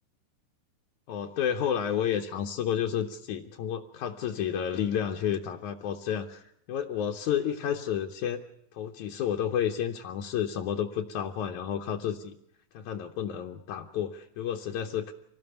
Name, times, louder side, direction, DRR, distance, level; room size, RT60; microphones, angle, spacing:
voice 1, 1.1-8.4 8.7-12.4 12.7-15.1, left 9 dB, 70° left, 2 dB, 2.2 m, -31 dB
26.0 x 18.5 x 7.0 m, 0.73 s
omnidirectional pair, 4.0 m